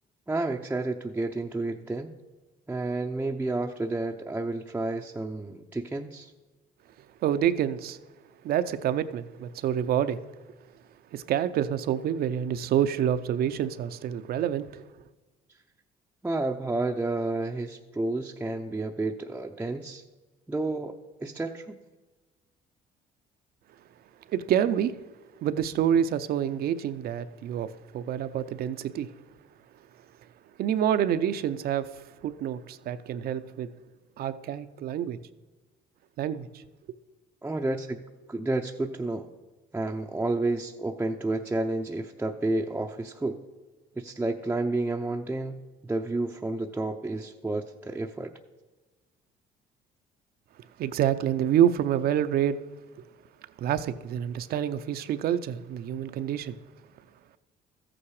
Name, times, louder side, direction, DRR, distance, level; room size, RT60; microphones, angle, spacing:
voice 1, 0.3-2.1 2.7-6.3 16.2-20.0 20.5-21.0 21.2-21.8 37.4-38.0 38.3-39.3 39.7-43.4 44.0-45.6 45.9-48.3, right 2 dB, 10° right, 0.6 m, -30 dB
voice 2, 7.2-8.0 8.4-10.2 11.1-14.8 24.3-24.9 25.4-29.1 30.6-33.7 34.2-35.2 36.2-36.5 50.8-52.6 53.6-56.6, right 10 dB, 65° right, 0.7 m, -27 dB
13.5 x 8.7 x 4.9 m
cardioid pair, 110°, 17 cm